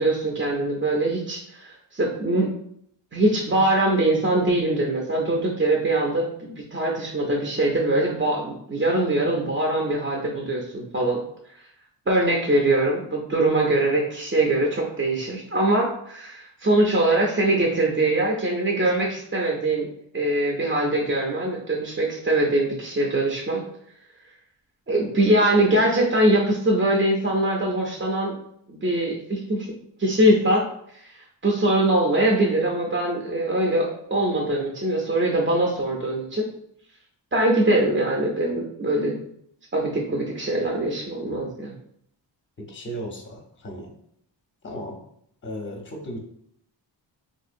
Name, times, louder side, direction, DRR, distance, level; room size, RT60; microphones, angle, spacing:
voice 1, 0.0-2.5 3.1-11.2 12.1-19.9 20.1-23.6 24.9-28.3 28.7-29.7 30.0-30.7 30.9-36.5 37.3-39.2 39.7-41.7, right 1 dB, 25° right, -1 dB, 0.5 m, -22 dB
voice 2, 42.6-43.9 44.6-45.0 45.4-46.2, equal, 25° left, 1 dB, 0.6 m, -35 dB
3.7 x 2.7 x 2.5 m, 0.69 s
wide cardioid pair, 140°, 46 cm